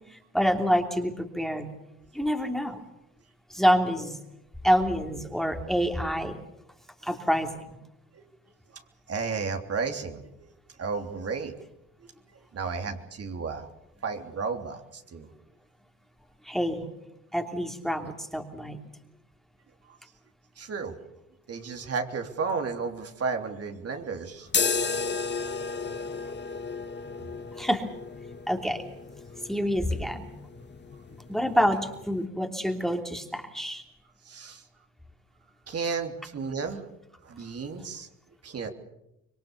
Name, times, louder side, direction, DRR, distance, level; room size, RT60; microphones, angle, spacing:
voice 1, 0.1-1.7 2.1-2.8 3.5-4.2 4.6-6.4 7.0-7.8 16.4-16.8 17.3-18.8 27.6-27.8 28.5-28.8 29.5-30.4 31.3-33.8, equal, ahead, 4 dB, 3.0 m, -27 dB
voice 2, 9.1-10.3 10.8-11.5 12.3-13.7 14.0-15.3 18.0-18.1 20.6-20.9 21.5-24.5 26.8-27.0 27.3-27.4 34.2-34.6 35.7-36.8 37.2-38.1 38.4-38.7, right 5 dB, 55° right, 4 dB, 3.3 m, -33 dB
sound 1, 24.5-32.3, left 5 dB, 35° left, 1.5 m, -34 dB
26.0 x 22.5 x 7.0 m, 0.85 s
cardioid pair, 90°, 30 cm